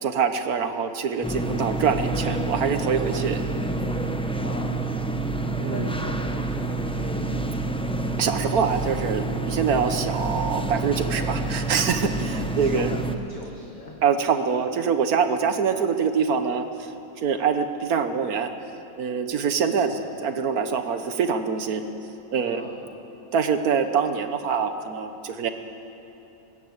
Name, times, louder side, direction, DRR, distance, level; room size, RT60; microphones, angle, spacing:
voice 1, 0.0-3.4 5.6-5.8 8.2-12.9 14.0-16.9 17.2-18.5 19.0-21.8 22.3-22.6 23.3-25.5, right 6 dB, 85° right, 8 dB, 1.6 m, -24 dB
sound 1, 1.2-13.2, right 2 dB, 5° left, 0.5 m, -28 dB
voice 2, 3.0-3.4 4.4-5.0 5.6-7.9 12.5-14.0 14.5-14.7 19.9-20.1 22.4-22.8, left 2 dB, 30° left, 0 dB, 1.7 m, -39 dB
21.0 x 17.5 x 8.1 m, 3.0 s
omnidirectional pair, 1.5 m